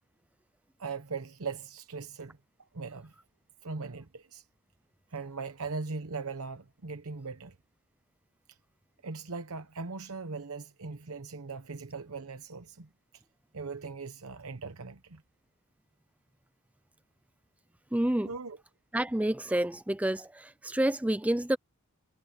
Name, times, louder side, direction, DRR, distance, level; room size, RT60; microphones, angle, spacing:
voice 1, 0.8-2.4 2.7-3.1 3.6-4.5 5.1-7.6 8.5-8.6 9.0-13.2 13.5-15.2 18.2-18.6, right 4 dB, 75° right, 1.0 m, -39 dB
voice 2, 17.9-18.3 18.9-21.6, right 1 dB, 5° right, 0.4 m, -28 dB
head